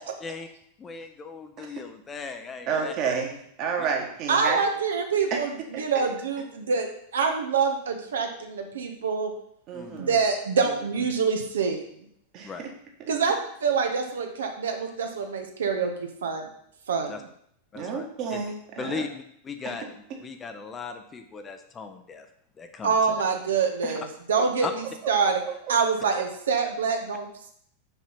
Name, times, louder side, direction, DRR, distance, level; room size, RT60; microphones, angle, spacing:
voice 1, 0.8-2.9 9.7-10.1 12.4-12.6 17.1-17.2 17.7-18.4 18.8-22.3 22.6-22.9 24.6-24.7, left 5 dB, 20° left, 6 dB, 0.7 m, -37 dB
voice 2, 2.7-3.3 3.6-4.6 5.3-5.4 5.7-5.8 9.7-10.1 12.3-12.7 17.7-19.0, right 6 dB, 40° right, 2 dB, 1.7 m, -30 dB
voice 3, 4.3-6.9 7.1-9.3 10.0-11.8 13.1-16.5 16.9-17.1 22.8-25.4 25.7-27.3, right 5 dB, 65° right, 4 dB, 1.0 m, -26 dB
5.9 x 5.5 x 5.8 m, 0.70 s
figure-of-eight pair, 90°, 0 cm